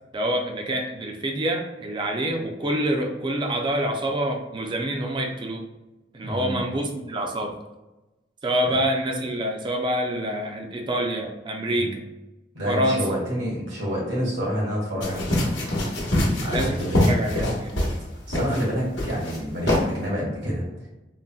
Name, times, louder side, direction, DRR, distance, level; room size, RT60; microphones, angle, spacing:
voice 1, 0.1-5.6 6.1-7.5 8.4-12.0 12.7-13.0 16.5-17.9, right 1 dB, 25° right, 2 dB, 0.3 m, -26 dB
voice 2, 6.2-6.6 8.6-8.7 11.7-11.9 12.5-15.3 16.4-17.0 18.3-20.6, equal, 85° right, -5 dB, 1.5 m, -28 dB
sound 1, 15.0-18.0 18.3-18.6 19.0-19.4 19.7-19.8, left 1 dB, 90° left, 0.9 m, -23 dB
3.8 x 2.0 x 2.3 m, 1.0 s
head